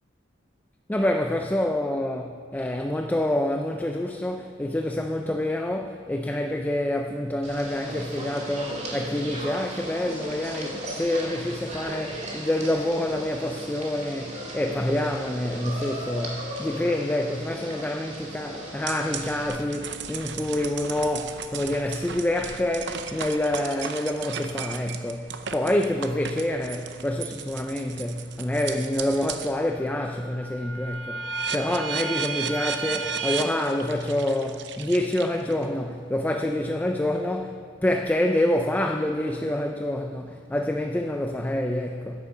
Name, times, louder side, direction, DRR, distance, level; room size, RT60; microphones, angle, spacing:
voice 1, 0.9-42.3, left 1 dB, 10° left, 0.4 m, -27 dB
sound 1, 7.4-19.5, right 1 dB, 40° right, 2.4 m, -36 dB
sound 2, 18.9-29.6 30.0-35.6, right 6 dB, 65° right, 0.8 m, -35 dB
11.0 x 9.8 x 7.0 m
head